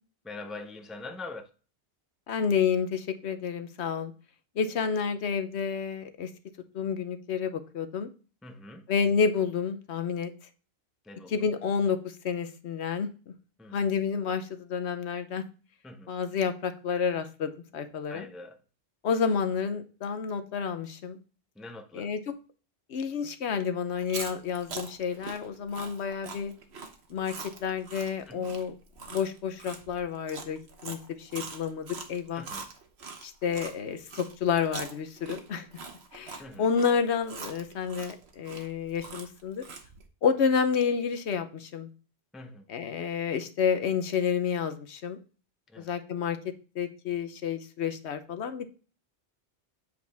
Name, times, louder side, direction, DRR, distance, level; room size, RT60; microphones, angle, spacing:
voice 1, 0.2-1.5 8.4-8.9 11.0-11.5 13.6-13.8 15.8-16.1 18.1-18.6 21.6-22.1 28.3-28.5 32.3-32.7 36.4-36.7 42.3-42.7 45.7-45.9, left 2 dB, ahead, 0.5 m, -43 dB
voice 2, 2.3-4.1 4.6-6.3 6.7-8.1 8.9-10.3 11.3-12.0 12.2-13.1 13.7-15.4 16.1-18.3 19.0-21.2 21.9-22.2 22.9-26.5 27.1-27.3 27.6-28.7 29.1-32.4 33.2-35.7 36.1-39.6 40.2-41.9 42.7-45.2 45.8-46.4 46.7-48.7, left 6 dB, 80° left, 1.1 m, -29 dB
Chewing mastication, 23.9-33.7 34.1-40.0, right 4 dB, 70° right, 1.3 m, -42 dB
7.8 x 4.9 x 3.4 m
omnidirectional pair, 1.1 m